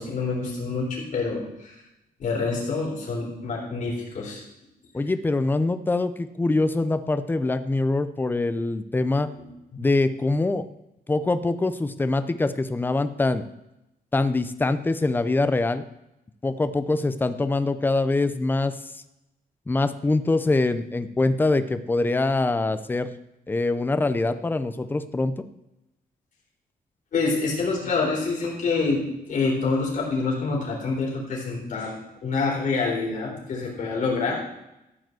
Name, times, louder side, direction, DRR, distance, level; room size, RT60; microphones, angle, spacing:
voice 1, 0.0-1.7 2.2-4.4 9.3-9.5 27.1-32.0 32.2-34.4, left 4 dB, 55° left, -3 dB, 3.8 m, -26 dB
voice 2, 4.9-9.3 9.8-10.6 11.1-13.4 14.1-15.8 16.4-18.7 19.7-23.2 23.5-25.4, left 2 dB, 10° left, 11 dB, 0.5 m, -24 dB
13.5 x 5.0 x 7.7 m, 0.89 s
wide cardioid pair, 175°, 16 cm